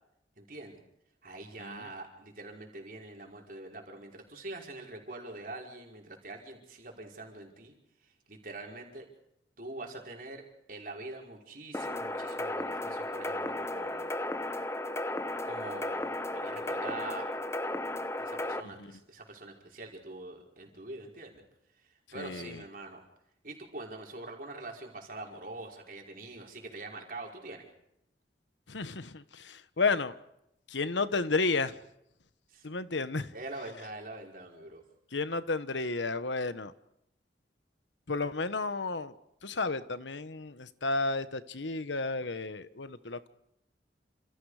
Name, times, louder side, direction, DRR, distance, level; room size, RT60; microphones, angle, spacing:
voice 1, 0.4-0.8 1.2-7.7 8.0-9.1 9.6-14.1 15.4-17.3 18.2-21.4 21.8-23.0 23.4-27.6 32.5-32.7 33.3-34.8, right 2 dB, 50° right, 0 dB, 5.2 m, -44 dB
voice 2, 1.6-1.9 18.8-18.9 22.1-22.6 28.7-30.1 30.7-31.7 32.6-33.3 35.1-36.7 38.1-39.1 39.4-43.3, left 3 dB, 85° left, 12 dB, 1.3 m, -32 dB
sound 1, 11.7-18.6, left 1 dB, 15° left, 1.0 m, -34 dB
28.5 x 27.5 x 5.0 m, 0.80 s
head